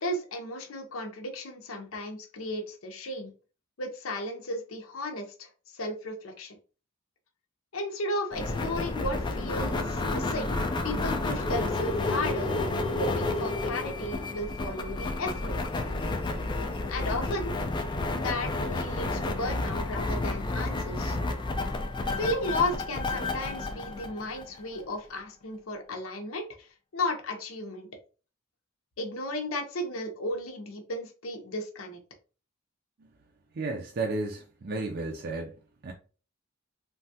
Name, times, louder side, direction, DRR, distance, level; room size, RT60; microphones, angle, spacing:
voice 1, 0.0-3.3 3.8-6.6 7.7-10.6 10.8-12.5 13.0-15.5 16.9-17.6 18.2-21.2 22.1-26.7 26.9-27.9 29.0-32.0, left 1 dB, 80° left, 0.7 m, -34 dB
sound 1, 8.3-24.8, left 2 dB, 20° left, 0.3 m, -31 dB
voice 2, 33.5-35.5 35.8-35.9, right 3 dB, 50° right, 0.4 m, -33 dB
3.2 x 2.2 x 2.7 m
head